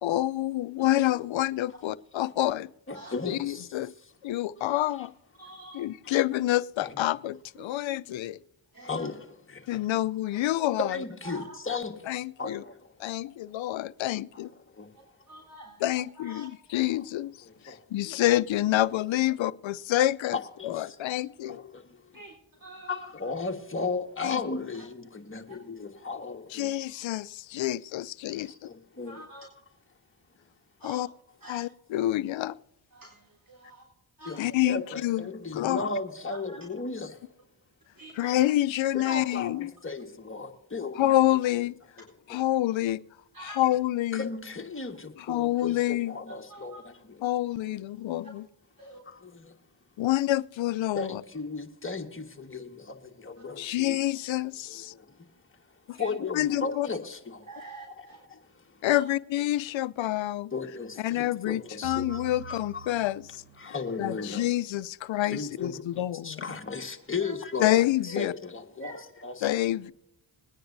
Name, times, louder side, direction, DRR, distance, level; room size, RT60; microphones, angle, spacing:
voice 1, 0.0-2.7 3.3-3.9 4.2-5.1 5.7-8.4 9.7-11.0 12.1-12.6 13.0-14.5 15.8-17.4 17.6-20.4 20.6-21.6 24.2-24.4 26.5-28.5 30.8-31.1 31.5-32.6 34.4-35.3 35.5-35.9 38.1-39.7 41.0-41.7 42.3-43.0 43.4-44.3 45.2-46.1 47.2-48.4 50.0-51.2 53.6-54.9 55.9-56.0 56.3-56.9 58.8-60.5 61.0-63.4 64.0-66.6 67.6-68.3 69.4-69.9, left 14 dB, 75° left, 0.6 m, -27 dB
voice 2, 2.9-3.7 5.0-5.1 6.0-6.2 6.8-7.0 8.8-9.8 10.8-13.1 14.7-14.9 16.9-17.0 17.4-17.8 20.3-21.0 21.5-22.2 22.9-26.7 28.3-29.2 34.2-37.2 38.9-41.1 42.3-42.4 44.1-47.2 47.7-47.8 48.9-49.5 50.9-54.0 54.7-55.3 55.9-57.5 58.0-58.8 60.5-62.9 63.6-64.5 65.3-69.5, left 4 dB, 25° left, 1.5 m, -36 dB
voice 3, 5.4-5.8 7.6-7.7 8.7-9.1 10.3-10.4 11.2-11.6 15.3-15.8 16.2-16.5 22.1-22.3 22.6-23.0 25.5-25.6 29.0-29.5 30.8-31.0 31.4-31.6 32.9-33.8 34.2-34.5 36.3-36.4 38.0-38.3 43.3-43.6 46.5-46.8 48.2-48.3 48.8-49.0 55.9-56.1 57.5-58.2 58.9-59.0 66.4-66.5 67.2-67.3 68.1-68.3 68.8-69.0, right 1 dB, 45° right, 3.8 m, -46 dB
sound 1, 61.8-64.1, right 7 dB, 80° right, 0.9 m, -45 dB
21.0 x 9.8 x 2.6 m
cardioid pair, 55°, 47 cm